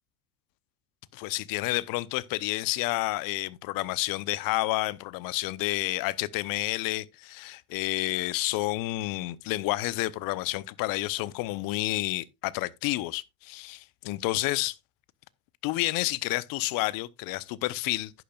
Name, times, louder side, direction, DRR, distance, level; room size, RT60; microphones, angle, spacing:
voice 1, 1.1-14.7 15.6-18.1, left 19 dB, 50° left, 0.8 m, -30 dB
11.0 x 10.0 x 2.4 m
hypercardioid pair, 85°, 44 cm